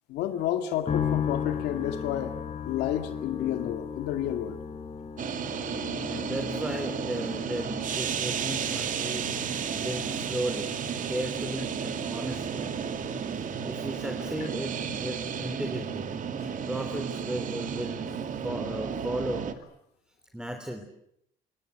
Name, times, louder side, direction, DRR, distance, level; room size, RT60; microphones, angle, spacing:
voice 1, 0.1-2.4 2.6-4.6 16.4-16.5, left 11 dB, 85° left, 7 dB, 2.2 m, -31 dB
sound 1, 0.9-16.1 16.4-17.2, left 7 dB, 40° left, 5.8 m, -38 dB
sound 2, 5.2-19.5, right 7 dB, 50° right, 2.6 m, -33 dB
voice 2, 6.0-10.8 11.0-12.7 13.4-16.2 16.7-19.5 20.3-20.8, right 1 dB, 5° right, 5 dB, 3.3 m, -35 dB
27.0 x 26.0 x 8.1 m, 0.75 s
cardioid pair, 110°, 17 cm